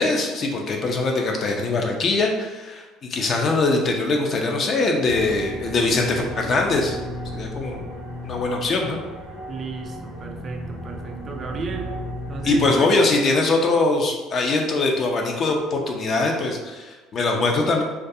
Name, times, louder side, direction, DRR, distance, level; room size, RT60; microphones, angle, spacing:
voice 1, 0.0-7.0 7.3-7.8 8.2-9.0 12.4-17.8, left 3 dB, 45° left, 1 dB, 0.4 m, -22 dB
sound 1, 5.1-12.7, equal, 70° left, 1.1 m, -34 dB
voice 2, 9.5-12.0 12.3-12.9, right 4 dB, 40° right, 4 dB, 0.3 m, -33 dB
2.3 x 2.3 x 2.6 m, 1.2 s
supercardioid pair, 95°, 0 cm